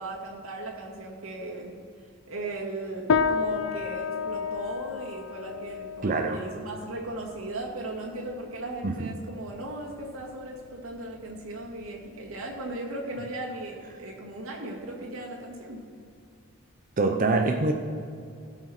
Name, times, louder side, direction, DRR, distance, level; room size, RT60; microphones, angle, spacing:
voice 1, 0.0-1.8 2.3-15.8, right 2 dB, 75° right, -2 dB, 2.1 m, -37 dB
sound 1, 3.1-12.7, left 6 dB, 70° left, 0.6 m, -33 dB
voice 2, 6.0-6.4 8.8-9.1 17.0-17.7, right 3 dB, 40° right, 4 dB, 0.6 m, -25 dB
16.0 x 6.5 x 4.4 m, 2.5 s
head